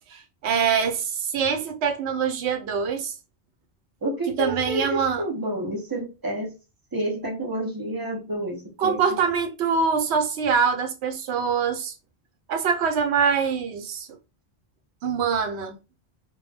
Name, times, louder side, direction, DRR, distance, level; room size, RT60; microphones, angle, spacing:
voice 1, 0.1-3.2 4.4-5.2 8.8-11.9 12.5-14.1 15.0-15.8, right 6 dB, 80° right, 0.9 m, -24 dB
voice 2, 4.0-6.5 6.9-9.2, right 1 dB, 30° right, 0.4 m, -29 dB
2.2 x 2.0 x 3.1 m
omnidirectional pair, 1.1 m